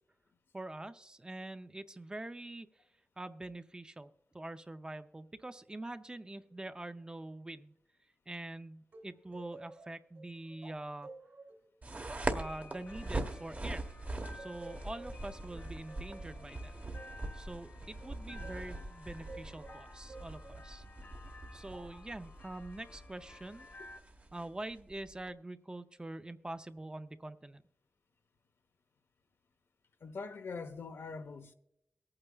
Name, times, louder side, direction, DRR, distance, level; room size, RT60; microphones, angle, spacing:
voice 1, 0.5-2.8 3.2-7.7 8.3-11.1 12.3-13.9 14.3-16.7 17.3-20.8 21.5-23.7 24.3-27.6, right 2 dB, 20° right, 0.5 m, -45 dB
sound 1, 8.9-13.9 14.4-18.7 19.3-20.7 21.7-22.2, right 3 dB, 60° right, 1.7 m, -53 dB
sound 2, 11.8-25.3, right 2 dB, 35° right, 1.0 m, -42 dB
sound 3, 12.1-24.0, left 3 dB, 50° left, 0.7 m, -55 dB
voice 2, 30.0-31.5, left 4 dB, 75° left, 0.9 m, -43 dB
23.0 x 8.7 x 2.3 m
wide cardioid pair, 125°, 4 cm